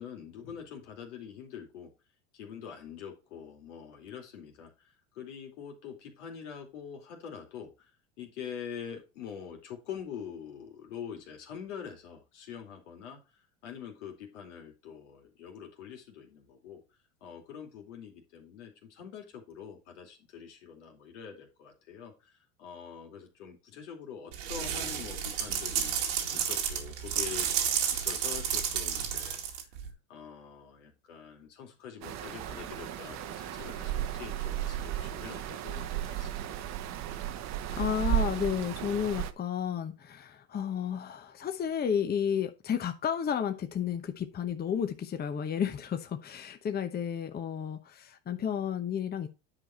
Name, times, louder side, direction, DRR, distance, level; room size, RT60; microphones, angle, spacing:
voice 1, 0.0-1.9 2.3-7.9 8.2-16.8 17.2-27.5 27.9-29.4 30.1-36.6, left 7 dB, 80° left, 2.7 m, -45 dB
sound 1, 24.3-29.9, right 8 dB, 80° right, 2.3 m, -31 dB
sound 2, 32.0-39.3, right 11 dB, 50° right, 1.1 m, -34 dB
voice 2, 37.7-49.3, left 8 dB, 25° left, 0.9 m, -32 dB
10.0 x 4.8 x 4.3 m
hypercardioid pair, 90°, 35 cm